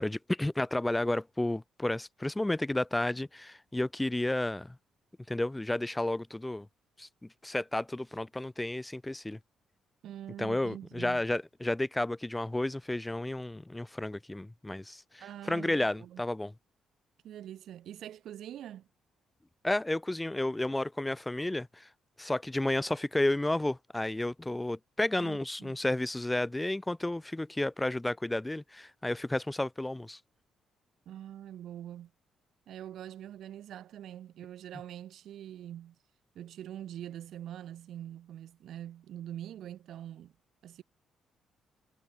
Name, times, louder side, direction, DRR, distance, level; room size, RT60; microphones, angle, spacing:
voice 1, 0.0-4.8 5.3-6.7 7.0-7.1 7.4-9.4 10.4-16.5 19.6-21.9 22.2-30.2, left 1 dB, 10° left, 1.6 m, -32 dB
voice 2, 10.0-11.2 15.2-16.2 17.2-18.9 25.2-25.8 31.1-32.1 32.7-36.0 36.3-40.3 40.6-40.8, right 11 dB, 75° right, 5.9 m, -44 dB
cardioid pair, 90°, 0 cm